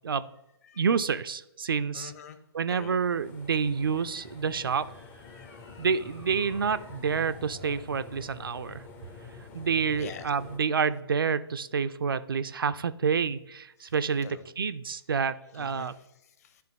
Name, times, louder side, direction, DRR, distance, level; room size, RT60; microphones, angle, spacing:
voice 1, 0.8-2.1 2.5-4.9 5.8-8.8 9.5-15.9, right 6 dB, 60° right, 11 dB, 0.4 m, -28 dB
voice 2, 1.9-2.4 2.7-3.0 4.1-4.3 5.3-5.9 10.0-10.3 13.8-13.9 14.2-14.5 15.5-16.6, left 7 dB, 35° left, 10 dB, 0.7 m, -46 dB
sound 1, 2.8-10.6, left 4 dB, 10° left, 0.4 m, -48 dB
sound 2, 3.5-7.9, left 1 dB, 80° left, 2.0 m, -55 dB
10.0 x 3.5 x 3.8 m, 0.90 s
figure-of-eight pair, 130°, 14 cm